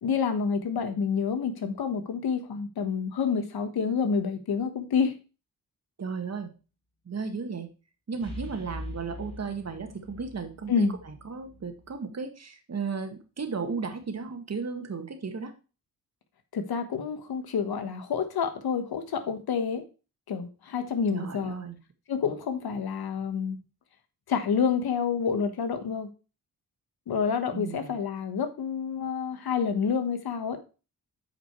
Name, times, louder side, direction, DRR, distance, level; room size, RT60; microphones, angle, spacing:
voice 1, 0.0-5.1 10.7-10.9 16.5-19.8 20.3-21.6 22.1-23.6 24.3-26.1 27.1-30.6, left 6 dB, 90° left, 8 dB, 1.4 m, -28 dB
voice 2, 6.0-6.5 7.0-7.7 8.1-15.5 21.1-21.8 27.5-28.0, right 5 dB, 45° right, 6 dB, 1.8 m, -35 dB
sound 1, 8.2-12.0, left 1 dB, 15° left, 3.4 m, -43 dB
8.6 x 5.1 x 4.6 m, 0.32 s
wide cardioid pair, 95°, 36 cm